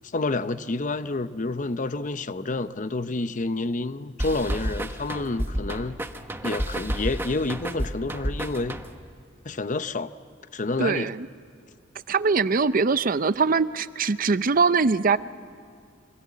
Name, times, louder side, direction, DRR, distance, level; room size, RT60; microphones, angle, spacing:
voice 1, 0.1-6.1 6.4-8.8 9.4-10.1 10.5-11.1, left 2 dB, 40° left, 0.7 m, -29 dB
sound 1, 4.2-9.2, right 1 dB, 10° right, 1.0 m, -31 dB
voice 2, 10.8-11.3 12.1-15.2, right 4 dB, 45° right, 0.6 m, -22 dB
27.5 x 24.0 x 8.5 m
head